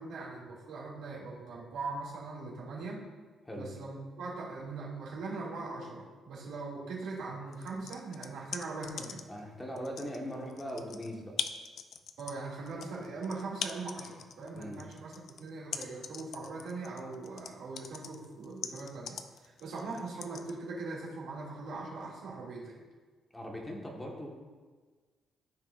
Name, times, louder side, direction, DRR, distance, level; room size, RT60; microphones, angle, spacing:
voice 1, 0.0-3.0 3.5-9.2 12.2-22.8, right 3 dB, 80° right, -5 dB, 2.6 m, -41 dB
sound 1, 7.5-9.4 9.8-20.5, left 7 dB, 65° left, 0.5 m, -41 dB
voice 2, 9.3-11.4 14.5-14.9 23.3-24.3, equal, 15° left, -1 dB, 1.6 m, -40 dB
13.5 x 5.8 x 2.6 m, 1.4 s
cardioid pair, 90°, 0 cm